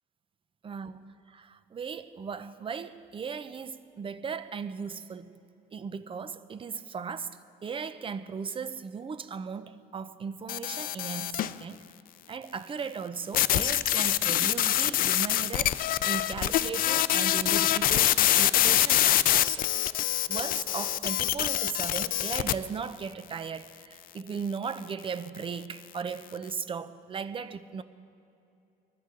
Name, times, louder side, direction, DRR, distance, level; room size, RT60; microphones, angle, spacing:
voice 1, 0.6-5.3 5.7-11.8 12.3-19.7 20.3-27.8, right 6 dB, 30° right, 13 dB, 0.7 m, -37 dB
sound 1, 10.5-11.6 13.3-22.5, left 13 dB, 60° left, 0.5 m, -25 dB
21.0 x 14.0 x 3.9 m, 2.7 s
cardioid pair, 110°, 17 cm